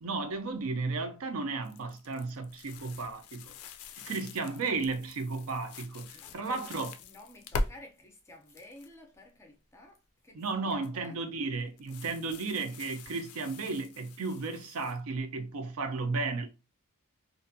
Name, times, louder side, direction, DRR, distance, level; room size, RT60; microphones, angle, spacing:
voice 1, 0.0-3.6 4.0-6.9 10.3-16.5, right 3 dB, 75° right, 0.5 m, -34 dB
sound 1, 1.6-7.7 8.3-8.9 10.7-11.1 11.8-15.0, left 2 dB, 75° left, 0.3 m, -42 dB
voice 2, 6.1-11.2 11.9-12.0, left 1 dB, 10° left, 0.4 m, -52 dB
2.5 x 2.2 x 2.5 m
head